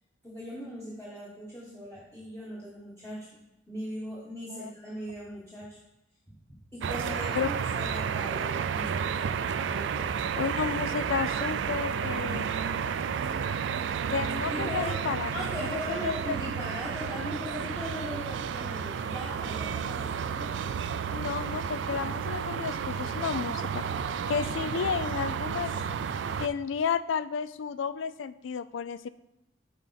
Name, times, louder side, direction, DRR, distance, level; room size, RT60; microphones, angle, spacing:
voice 1, 0.2-3.3 3.7-5.8 6.3-10.2 14.5-15.0 15.3-20.5, left 1 dB, 10° left, -6 dB, 1.2 m, -39 dB
sound 1, 6.8-26.5, right 7 dB, 70° right, 0.3 m, -31 dB
voice 2, 10.3-12.5 14.1-15.3 15.7-16.1 21.1-23.8 24.3-25.7 26.4-29.1, left 6 dB, 85° left, 16 dB, 0.4 m, -32 dB
8.4 x 4.4 x 4.0 m, 0.89 s
head